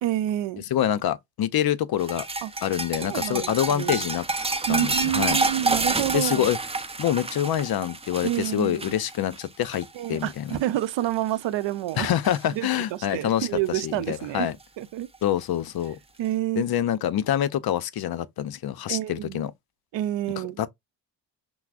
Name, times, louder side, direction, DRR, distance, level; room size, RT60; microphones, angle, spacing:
voice 1, 0.0-0.6 2.4-2.5 3.0-4.0 4.7-6.5 8.2-9.0 9.9-12.2 12.5-14.5 14.8-15.1 16.2-16.6 18.9-19.4 19.9-20.6, right 13 dB, 80° right, 0.6 m, -28 dB
voice 2, 0.7-2.3 2.6-4.2 4.7-5.4 6.1-6.6 7.0-10.6 12.0-14.6 15.2-16.0 16.6-19.5 20.6-20.7, left 11 dB, 55° left, 0.5 m, -26 dB
sound 1, 2.0-10.5 10.8-11.2 11.6-12.4 13.8-13.9 15.1-15.2, right 3 dB, 15° right, 0.5 m, -29 dB
5.8 x 2.0 x 2.4 m
cardioid pair, 80°, 44 cm